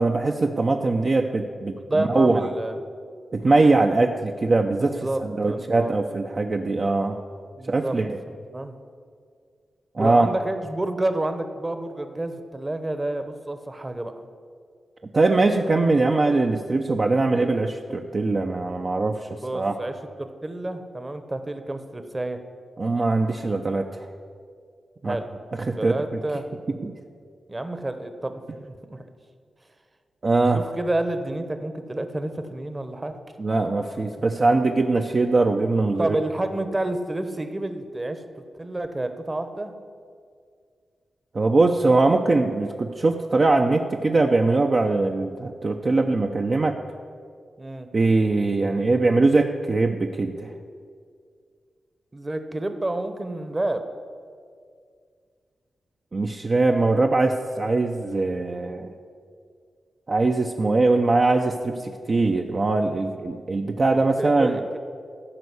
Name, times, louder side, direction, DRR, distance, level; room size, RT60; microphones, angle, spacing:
voice 1, 0.0-2.5 3.3-7.2 7.7-8.2 9.9-10.3 15.1-19.7 22.8-24.1 25.0-25.2 25.6-26.0 26.8-26.9 30.2-30.6 33.4-36.2 41.3-46.8 47.9-50.5 56.1-58.9 60.1-64.6, right 3 dB, 45° right, 2 dB, 0.6 m, -22 dB
voice 2, 1.9-2.8 4.8-5.9 7.6-8.0 8.3-8.8 10.0-14.2 19.4-22.4 25.0-25.3 25.8-26.5 27.5-29.0 30.5-33.2 36.0-39.7 47.6-47.9 52.1-53.8 63.8-64.8, right 1 dB, 25° right, 9 dB, 1.0 m, -29 dB
14.0 x 5.4 x 8.2 m, 2.1 s
cardioid pair, 75°, 0 cm